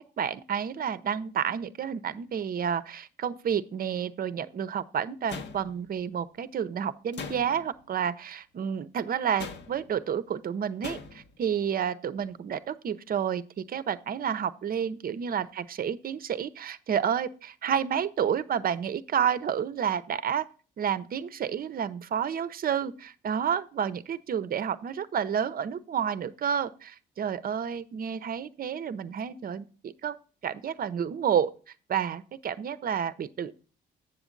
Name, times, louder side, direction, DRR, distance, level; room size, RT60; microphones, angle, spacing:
voice 1, 0.0-20.5 20.8-30.2 30.4-31.5 31.9-33.5, right 8 dB, 50° right, 0.6 m, -30 dB
sound 1, 5.3-6.0 7.1-7.8 9.4-10.0 10.8-11.4, left 5 dB, 60° left, 0.9 m, -41 dB
7.8 x 7.1 x 3.8 m
cardioid pair, 90°, 20 cm